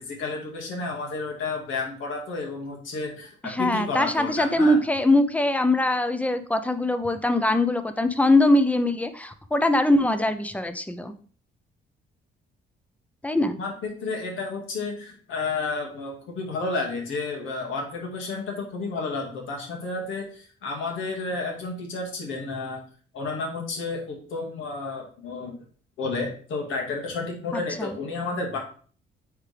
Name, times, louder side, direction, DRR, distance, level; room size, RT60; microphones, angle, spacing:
voice 1, 0.1-4.8 13.5-22.8 23.1-25.5 26.0-28.6, left 3 dB, 80° left, 0 dB, 2.1 m, -31 dB
voice 2, 3.4-11.1 13.2-13.6 27.5-27.9, left 1 dB, 5° left, 9 dB, 0.7 m, -22 dB
8.9 x 3.7 x 3.4 m, 0.44 s
cardioid pair, 90°, 20 cm